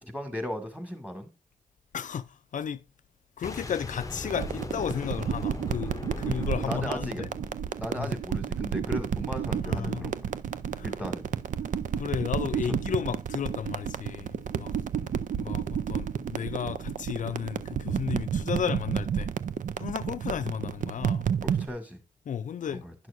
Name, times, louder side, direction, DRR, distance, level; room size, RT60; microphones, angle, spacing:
voice 1, 0.0-1.3 6.6-7.2 7.8-10.3 10.8-11.2 15.0-15.2 21.4-22.0 22.7-22.9, equal, 10° right, 2.0 m, -36 dB
voice 2, 1.9-2.8 3.4-7.3 8.0-8.1 9.6-10.1 10.7-10.9 11.9-14.7 15.3-19.3 19.8-21.3 22.3-22.8, left 8 dB, 65° left, 0.4 m, -33 dB
Boom, 3.4-8.3, left 3 dB, 25° left, 0.7 m, -40 dB
sound 1, 4.2-21.7, right 8 dB, 70° right, 0.4 m, -31 dB
10.5 x 6.2 x 2.6 m
cardioid pair, 75°, 14 cm